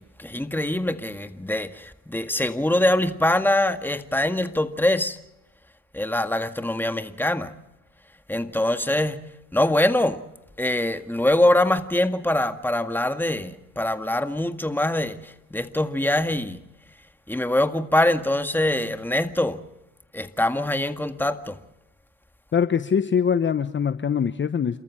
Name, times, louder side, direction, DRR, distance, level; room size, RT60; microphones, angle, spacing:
voice 1, 0.0-5.2 5.9-7.6 8.3-9.2 9.5-10.2 10.6-16.6 17.3-19.6 20.1-21.6, left 1 dB, 5° left, 1.9 m, -23 dB
voice 2, 22.5-24.8, left 7 dB, 40° left, 0.9 m, -23 dB
29.0 x 14.0 x 7.5 m
supercardioid pair, 55°, 29 cm